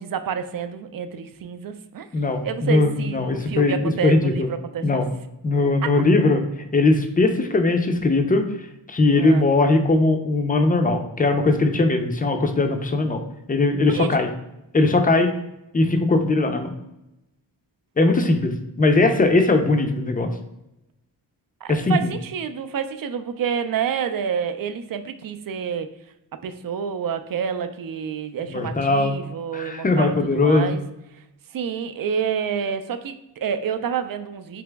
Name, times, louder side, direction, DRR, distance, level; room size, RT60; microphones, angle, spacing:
voice 1, 0.0-2.1 2.4-5.0 5.8-5.9 9.2-9.4 13.9-14.2 21.6-25.9 26.3-30.8 31.5-34.6, right 7 dB, 50° right, 9 dB, 0.4 m, -28 dB
voice 2, 2.1-4.5 4.8-5.1 5.4-8.4 8.9-13.2 13.5-14.3 14.7-15.3 15.7-16.7 18.0-20.3 21.7-22.0 28.5-29.2 29.5-30.8, left 2 dB, 20° left, 5 dB, 0.5 m, -20 dB
3.4 x 2.9 x 3.4 m, 0.91 s
cardioid pair, 55°, 47 cm